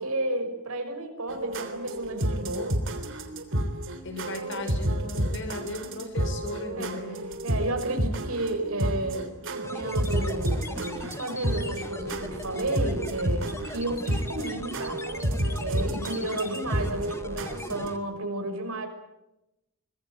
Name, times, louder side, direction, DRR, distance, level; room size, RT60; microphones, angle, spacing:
voice 1, 0.0-2.8 6.7-7.0 7.4-15.0 15.6-18.9, right 2 dB, 75° right, 5 dB, 6.1 m, -32 dB
sound 1, 1.3-17.9, right 1 dB, 60° right, 3.4 m, -31 dB
voice 2, 4.0-7.3, left 2 dB, 55° left, 7 dB, 5.6 m, -37 dB
sound 2, 9.6-18.0, left 1 dB, 10° left, 1.8 m, -39 dB
24.5 x 21.0 x 9.2 m, 0.92 s
head